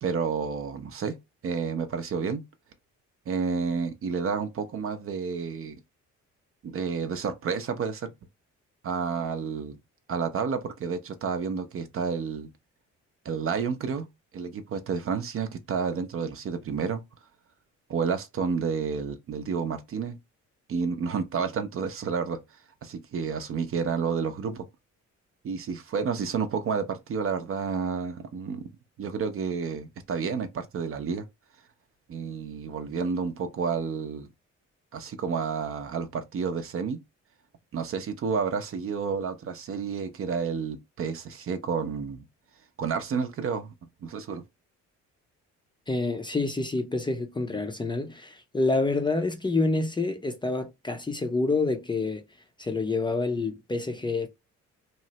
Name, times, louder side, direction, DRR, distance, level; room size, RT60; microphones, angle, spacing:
voice 1, 0.0-1.2 1.4-2.4 3.3-5.8 6.6-8.1 8.8-9.8 10.1-12.5 13.2-14.1 14.3-17.0 17.9-20.2 20.7-22.4 22.8-24.7 25.4-28.6 29.0-31.2 32.1-34.3 34.9-37.0 37.7-42.2 42.8-43.7 44.0-44.4, right 5 dB, 45° right, 0.5 m, -30 dB
voice 2, 45.9-52.2 52.6-54.3, left 3 dB, 15° left, 0.5 m, -27 dB
3.0 x 2.0 x 2.8 m
cardioid pair, 90°, 30 cm